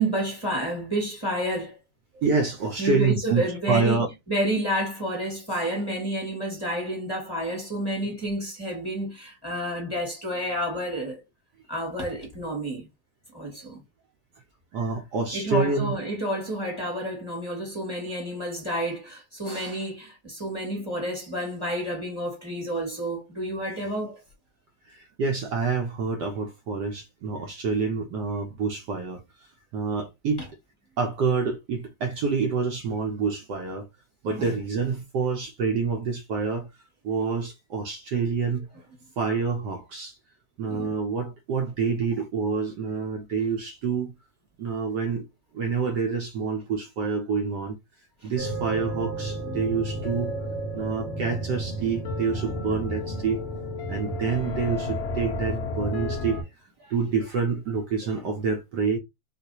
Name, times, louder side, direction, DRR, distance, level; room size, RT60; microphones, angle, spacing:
voice 1, 0.0-1.8 2.8-11.2 11.7-12.9 13.3-13.8 15.3-24.2 34.4-34.6 40.7-40.9 48.2-48.3, right 1 dB, 15° left, 1.3 m, -30 dB
voice 2, 2.1-4.1 14.7-16.0 24.9-30.4 31.0-33.9 34.2-36.7 37.0-38.7 39.2-40.2 40.6-44.1 44.6-45.2 45.5-47.8 48.2-50.3 50.7-53.4 53.9-56.5 56.8-59.0, right 5 dB, 70° right, 1.0 m, -27 dB
sound 1, 48.4-56.4, equal, 70° left, 0.6 m, -32 dB
3.9 x 2.4 x 2.8 m
omnidirectional pair, 2.3 m